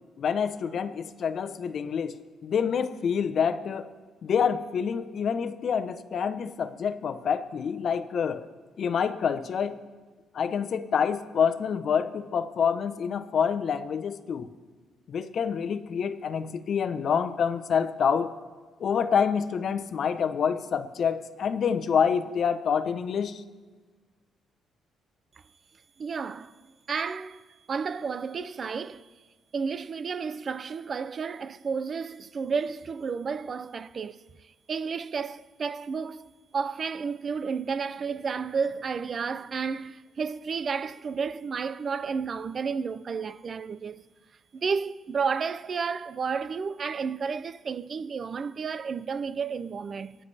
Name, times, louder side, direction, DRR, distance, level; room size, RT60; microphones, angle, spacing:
voice 1, 0.2-3.9 4.2-8.5 8.8-9.8 10.3-14.5 15.1-18.3 18.8-23.4, left 7 dB, 60° left, 0.9 m, -27 dB
voice 2, 26.0-26.5 26.9-29.1 29.5-44.0 44.5-50.2, right 5 dB, 45° right, 0.5 m, -32 dB
25.0 x 10.0 x 3.4 m
cardioid pair, 90°, 0 cm